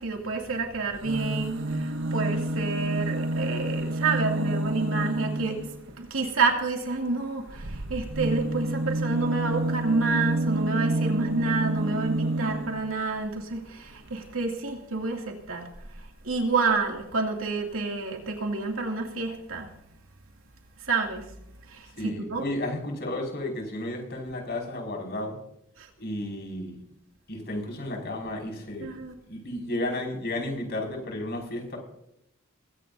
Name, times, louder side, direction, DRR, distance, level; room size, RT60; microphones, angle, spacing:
voice 1, 0.0-5.7 5.9-15.7 16.0-19.7 20.8-21.3 21.7-22.4 25.8-25.9 28.8-29.1, right 3 dB, 80° right, 2.6 m, -29 dB
sound 1, 0.9-5.8 7.5-12.9 13.9-14.0 14.2-14.3, right 1 dB, 60° right, 1.0 m, -29 dB
voice 2, 22.0-25.4 26.0-26.8 27.3-28.9 29.3-31.8, left 1 dB, 50° left, 5.9 m, -33 dB
22.0 x 17.0 x 2.8 m
head